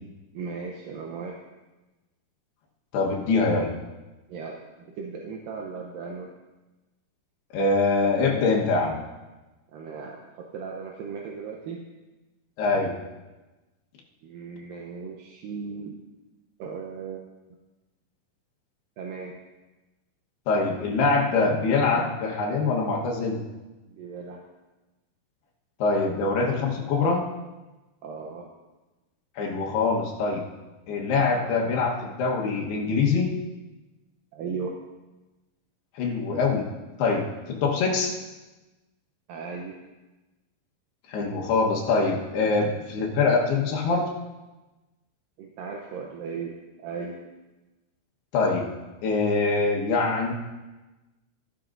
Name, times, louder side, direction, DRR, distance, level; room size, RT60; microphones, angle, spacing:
voice 1, 0.3-1.4 4.3-6.3 9.7-11.8 14.2-16.0 16.6-17.2 19.0-19.4 23.9-24.4 28.0-28.5 34.3-34.8 39.3-39.8 45.4-47.2, right 5 dB, 75° right, 0 dB, 2.1 m, -37 dB
voice 2, 2.9-3.7 7.5-9.0 12.6-13.0 20.5-23.4 25.8-27.3 29.4-30.5 30.9-33.3 36.0-36.7 37.0-38.1 41.1-44.1 48.3-48.7 49.0-50.3, left 4 dB, 75° left, 0 dB, 3.2 m, -24 dB
15.5 x 11.5 x 2.6 m, 1.1 s
omnidirectional pair, 4.8 m